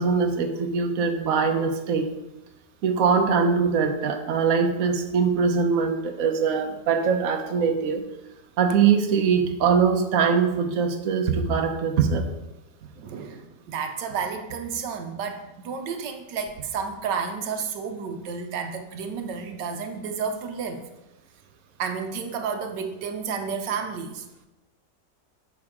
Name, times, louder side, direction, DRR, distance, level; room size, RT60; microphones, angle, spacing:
voice 1, 0.0-2.1 2.8-8.0 8.6-12.2, right 6 dB, 60° right, 4 dB, 1.2 m, -22 dB
voice 2, 13.0-20.8 21.8-24.2, right 6 dB, 80° right, 6 dB, 1.4 m, -31 dB
11.0 x 6.1 x 3.6 m, 0.99 s
omnidirectional pair, 1.9 m